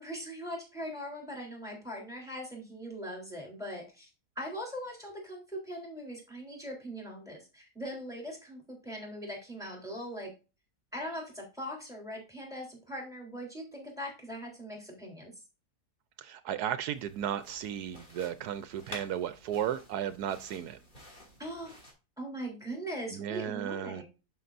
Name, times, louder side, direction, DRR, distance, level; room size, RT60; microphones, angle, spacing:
voice 1, 0.0-4.1 4.4-10.3 10.9-15.3 21.4-21.7 22.2-24.0, equal, ahead, 3.5 m, -40 dB
voice 2, 16.2-20.8 23.1-24.0, right 10 dB, 80° right, 1.2 m, -34 dB
sound 1, 16.9-21.9, equal, 30° left, 2.7 m, -51 dB
11.0 x 5.6 x 2.6 m
omnidirectional pair, 1.7 m